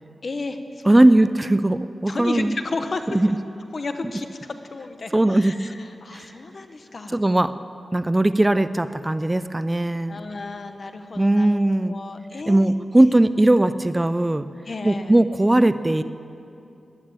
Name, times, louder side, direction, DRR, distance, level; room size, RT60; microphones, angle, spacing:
voice 1, 0.2-1.1 2.1-3.1 3.7-7.2 10.1-11.6 11.8-12.7 14.6-15.1, left 3 dB, 50° left, 8 dB, 1.1 m, -33 dB
voice 2, 0.9-2.6 3.1-3.3 5.1-5.6 6.1-6.3 7.1-7.5 7.9-10.2 11.2-12.0 12.5-14.5 14.8-16.0, right 1 dB, 15° right, 13 dB, 0.4 m, -19 dB
15.0 x 11.0 x 8.8 m, 2.7 s
wide cardioid pair, 90°, 0 cm